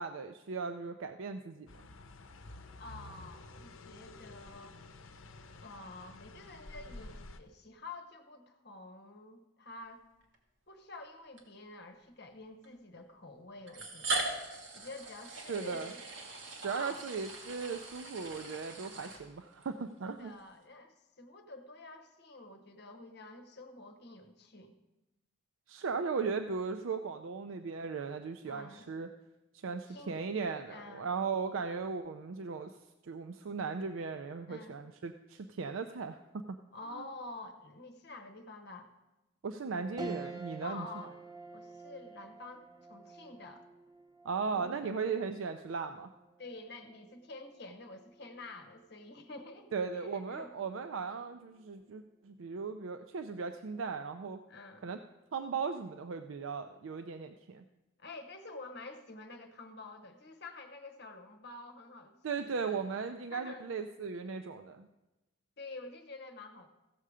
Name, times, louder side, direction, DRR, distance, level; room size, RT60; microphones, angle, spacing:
voice 1, 0.0-1.7 15.5-15.9 16.6-20.3 25.7-29.1 29.5-32.7 33.0-36.2 36.5-36.6 36.9-37.0 39.4-40.9 44.2-46.1 49.7-54.4 54.8-55.0 55.3-57.6 62.2-64.9, right 5 dB, 85° right, 8 dB, 0.5 m, -37 dB
sound 1, 1.7-7.4, left 2 dB, 90° left, 0.7 m, -50 dB
voice 2, 2.8-4.8 5.6-10.0 10.7-14.3 14.7-16.0 16.6-17.0 20.1-24.7 28.5-28.9 29.9-30.3 30.7-31.1 34.5-34.8 36.7-38.9 40.6-41.2 41.5-43.6 44.5-44.8 46.4-50.5 54.5-54.9 58.0-62.8 63.1-63.6 65.6-66.7, left 3 dB, 55° left, 7 dB, 1.0 m, -49 dB
sound 2, 10.2-10.3 11.4-11.5 12.6-12.7 13.7-19.7, right 2 dB, 70° right, 1.7 m, -40 dB
sound 3, 40.0-49.6 50.1-50.2 51.5-51.9, right 3 dB, 20° right, 0.7 m, -49 dB
15.5 x 6.6 x 4.9 m, 1.0 s
head